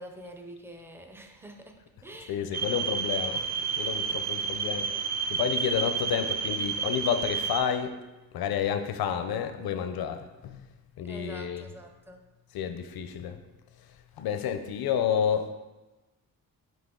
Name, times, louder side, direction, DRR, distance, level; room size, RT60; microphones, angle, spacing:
voice 1, 0.0-2.7 4.5-5.1 11.0-12.2, right 1 dB, 5° right, 4 dB, 0.4 m, -47 dB
voice 2, 2.3-3.4 3.8-4.9 5.3-7.9 8.3-10.7 11.0-11.7 12.5-13.4 14.2-15.5, left 8 dB, 80° left, 9 dB, 0.6 m, -30 dB
sound 1, 2.5-7.6, right 6 dB, 50° right, 0.6 m, -30 dB
6.1 x 5.2 x 3.7 m, 1.1 s
wide cardioid pair, 175°, 36 cm